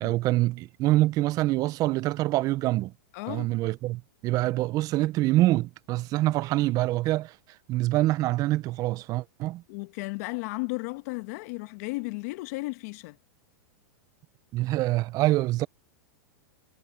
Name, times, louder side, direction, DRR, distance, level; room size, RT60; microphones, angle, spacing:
voice 1, 0.0-2.9 3.3-7.3 7.7-9.6 14.5-15.7, right 17 dB, 40° right, 0.9 m, -25 dB
voice 2, 3.1-3.5 9.7-13.2, left 25 dB, 55° left, 1.5 m, -34 dB
hypercardioid pair, 125°, 10 cm